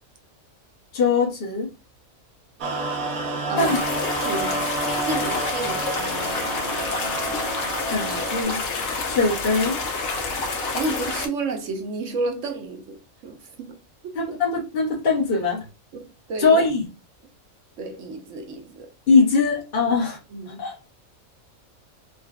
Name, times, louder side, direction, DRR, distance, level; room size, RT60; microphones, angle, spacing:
voice 1, 0.9-1.7 3.6-3.8 7.9-8.6 9.0-9.8 14.1-15.6 16.4-16.8 19.1-20.2 20.5-20.9, left 4 dB, 45° left, 1.0 m, -21 dB
sound 1, 2.6-8.4, right 2 dB, 85° right, 1.3 m, -29 dB
sound 2, 3.6-11.3, left 3 dB, 85° left, 1.2 m, -28 dB
voice 2, 4.2-4.6 5.0-5.9 10.7-13.8 14.0-14.1 15.9-16.6 17.8-18.9 20.3-20.6, right 2 dB, 70° right, 1.0 m, -31 dB
3.8 x 2.3 x 2.3 m
omnidirectional pair, 1.4 m